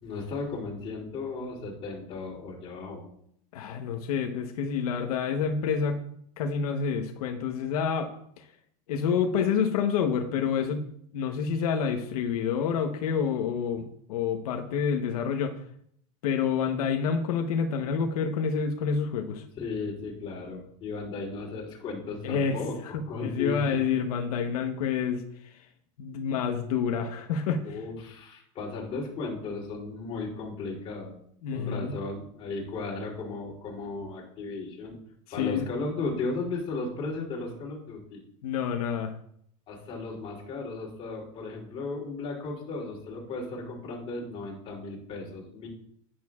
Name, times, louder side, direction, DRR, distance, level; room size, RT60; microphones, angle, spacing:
voice 1, 0.0-3.0 19.6-23.8 26.1-26.2 27.6-31.1 31.5-35.0 35.3-38.2 39.7-45.7, left 3 dB, 30° left, -2 dB, 3.1 m, -35 dB
voice 2, 3.5-6.0 6.4-8.1 8.4-8.5 8.9-10.8 11.1-15.5 16.2-19.4 22.2-22.6 22.9-25.7 26.0-27.7 31.4-31.9 35.3-35.7 38.4-39.2, left 6 dB, 85° left, 4 dB, 1.1 m, -28 dB
10.5 x 9.2 x 2.4 m, 0.68 s
supercardioid pair, 165°, 19 cm